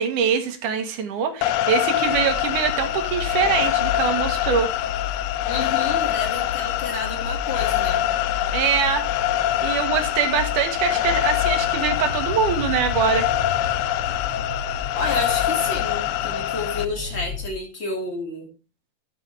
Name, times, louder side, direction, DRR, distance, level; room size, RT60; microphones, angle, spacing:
voice 1, 0.0-4.7 8.5-9.1 9.6-13.3, right 7 dB, 65° right, 6 dB, 2.6 m, -23 dB
sound 1, 1.4-16.9, left 13 dB, 90° left, 1.7 m, -24 dB
sound 2, 2.0-17.5, left 7 dB, 45° left, 2.5 m, -33 dB
voice 2, 5.5-8.1 14.9-18.5, left 2 dB, 20° left, 2 dB, 1.9 m, -30 dB
12.5 x 7.3 x 3.3 m, 0.31 s
omnidirectional pair, 4.1 m